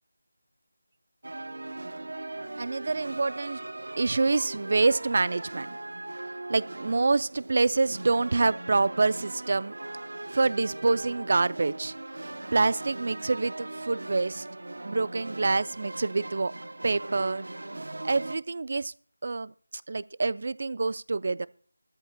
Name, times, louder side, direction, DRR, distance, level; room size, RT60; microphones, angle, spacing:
sound 1, 1.2-18.4, right 2 dB, 75° right, 0.8 m, -39 dB
voice 1, 2.6-3.6 4.0-5.8 6.5-9.8 10.3-14.5 14.8-16.5 16.8-17.4 18.0-18.9 19.2-21.5, right 3 dB, 45° right, 18 dB, 0.5 m, -26 dB
18.0 x 13.5 x 2.2 m, 0.43 s
figure-of-eight pair, 170°, 0 cm